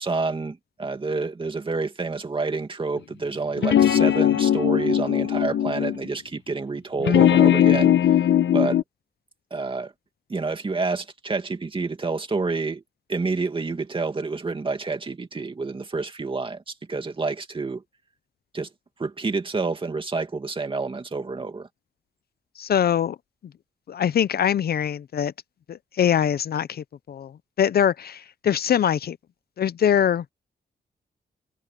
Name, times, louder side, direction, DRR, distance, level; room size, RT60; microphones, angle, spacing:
voice 1, 0.0-8.3 8.5-8.8 9.5-9.9 10.3-12.8 13.1-17.8 18.5-18.7 19.0-21.7, right 3 dB, 30° right, 2.3 m, -28 dB
sound 1, 3.6-6.0 7.0-8.8, left 10 dB, 90° left, 1.1 m, -19 dB
voice 2, 22.6-23.2 23.9-25.3 25.7-29.2 29.6-30.2, left 9 dB, 60° left, 0.5 m, -23 dB
wide cardioid pair, 150°, 18 cm